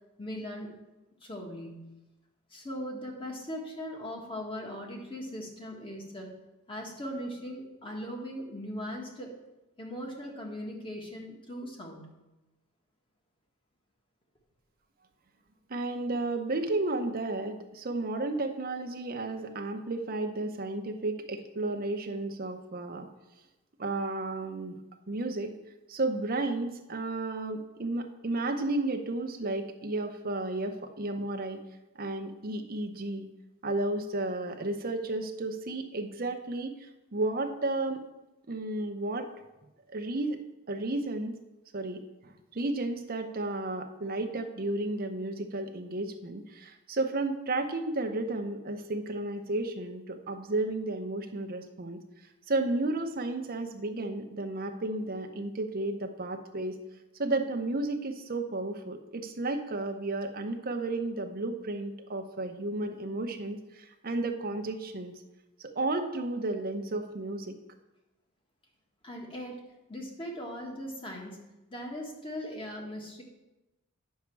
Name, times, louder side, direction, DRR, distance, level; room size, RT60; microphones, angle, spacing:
voice 1, 0.2-0.8 1.2-1.9 2.5-6.3 6.7-9.3 9.8-12.0 69.0-69.6 69.9-71.4 71.7-73.2, equal, 25° left, 0 dB, 1.6 m, -39 dB
voice 2, 15.7-23.1 23.8-24.8 25.1-25.5 25.9-31.6 32.0-33.3 33.6-38.0 38.5-39.3 39.9-40.4 40.7-41.3 41.7-52.0 52.5-56.8 57.2-65.1 65.6-67.6, right 2 dB, 45° right, 5 dB, 0.8 m, -33 dB
9.4 x 6.5 x 4.6 m, 1.0 s
head